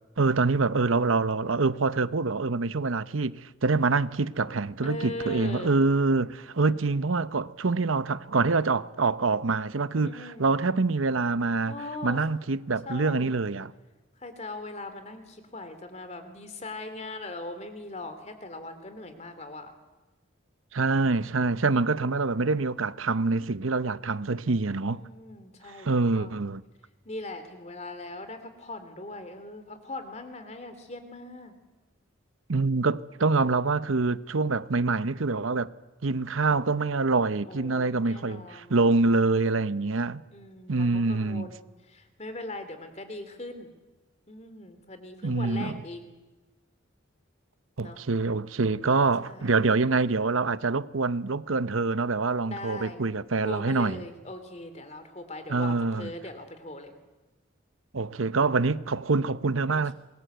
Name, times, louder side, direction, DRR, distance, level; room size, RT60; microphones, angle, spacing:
voice 1, 0.2-11.7 12.0-13.7 20.7-25.0 25.7-26.6 32.5-35.7 36.0-40.2 40.7-41.5 45.2-45.8 47.8-54.0 55.5-56.1 57.9-59.9, right 3 dB, 85° right, 0.9 m, -25 dB
voice 2, 4.8-5.7 10.0-10.6 11.7-12.3 12.8-13.4 14.2-19.7 24.9-25.9 26.1-26.4 27.0-31.5 37.4-38.8 40.3-43.7 44.3-46.2 47.8-48.0 49.2-49.8 52.4-53.1 53.4-56.9 59.7-59.9, left 2 dB, 35° left, 3.1 m, -40 dB
28.0 x 22.0 x 8.0 m
head